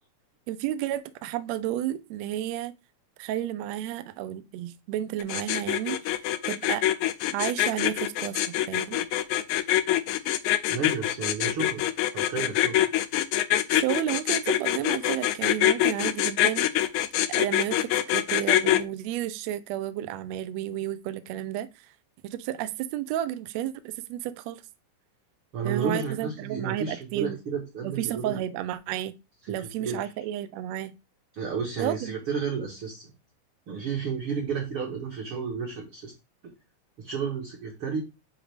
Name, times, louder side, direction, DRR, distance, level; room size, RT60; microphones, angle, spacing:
voice 1, 0.5-2.7 3.2-6.2 6.5-6.9 7.3-9.1 13.7-16.9 17.3-21.9 22.2-24.6 25.6-27.4 27.8-29.1 29.5-30.9 31.8-32.2, right 12 dB, 85° right, 1.5 m, -32 dB
sound 1, 5.2-18.8, left 13 dB, 80° left, 1.9 m, -24 dB
voice 2, 10.7-11.9 12.1-12.8 25.5-28.4 29.4-30.1 31.3-33.1 33.7-36.1 36.4-36.5 37.0-38.0, right 5 dB, 55° right, 1.8 m, -32 dB
9.6 x 3.6 x 3.4 m
omnidirectional pair, 3.7 m